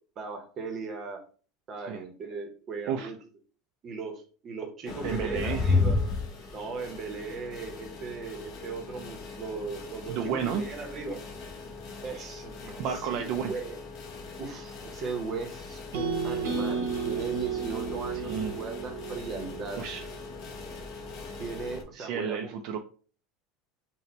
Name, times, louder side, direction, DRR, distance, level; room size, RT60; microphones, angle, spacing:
voice 1, 0.2-1.2 1.7-3.2 3.8-6.0 6.5-11.2 12.0-13.8 14.4-19.9 21.4-22.5, right 4 dB, 25° right, 3 dB, 0.7 m, -38 dB
sound 1, 4.8-21.8, left 3 dB, 35° left, 0.7 m, -36 dB
voice 2, 5.0-5.7 10.1-10.6 12.8-13.5 18.2-18.5 19.8-20.1 22.0-22.8, right 7 dB, 45° right, 4 dB, 0.3 m, -31 dB
sound 2, 15.9-20.1, right 5 dB, 80° right, 0.9 m, -33 dB
4.1 x 2.1 x 4.1 m, 0.40 s
cardioid pair, 175°, 0 cm